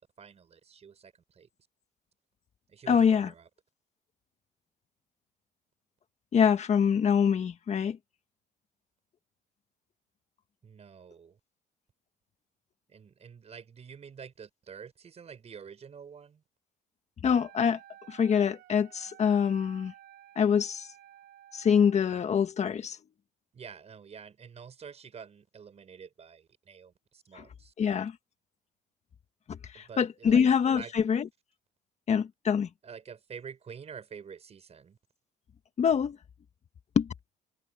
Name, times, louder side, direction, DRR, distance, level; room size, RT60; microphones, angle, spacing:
voice 1, 0.2-1.5 2.7-3.5 10.6-11.4 12.9-16.4 23.5-27.7 29.7-30.9 32.8-35.0, right 6 dB, 40° right, 5.6 m, -48 dB
voice 2, 2.9-3.3 6.3-8.0 17.2-17.8 18.1-19.9 20.3-20.9 21.5-23.0 27.3-27.4 27.8-28.1 29.5-31.3 32.1-32.7 35.8-36.2 36.9-37.1, left 7 dB, 40° left, 1.6 m, -25 dB
Wind instrument woodwind instrument, 17.3-22.1, right 12 dB, 70° right, 5.6 m, -54 dB
cardioid pair, 110°, 17 cm